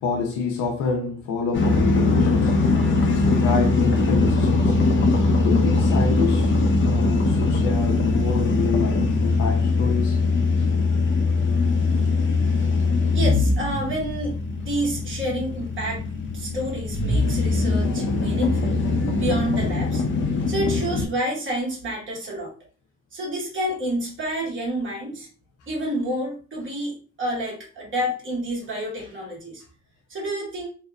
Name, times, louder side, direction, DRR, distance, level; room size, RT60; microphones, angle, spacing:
voice 1, 0.0-2.7 3.1-4.8 5.4-10.2 10.6-10.7, left 5 dB, 90° left, 0.6 m, -27 dB
sound 1, 1.5-21.1, left 3 dB, 40° left, 0.6 m, -21 dB
voice 2, 13.1-14.4 14.6-16.0 16.3-18.8 19.2-20.0 20.5-22.5 23.1-25.3 25.7-29.6 30.1-30.7, right 1 dB, 40° right, 1.3 m, -29 dB
2.7 x 2.1 x 2.3 m
cardioid pair, 90°, 30 cm